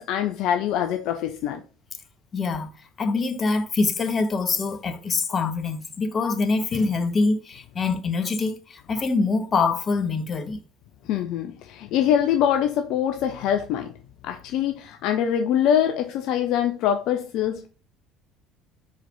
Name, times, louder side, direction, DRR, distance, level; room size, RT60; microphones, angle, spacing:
voice 1, 0.0-1.6 11.1-13.9 14.2-17.7, left 9 dB, 60° left, 0.6 m, -24 dB
voice 2, 2.3-2.7 3.0-10.6, left 4 dB, 35° left, 1.4 m, -24 dB
4.9 x 4.6 x 5.1 m
hypercardioid pair, 60°, 0 cm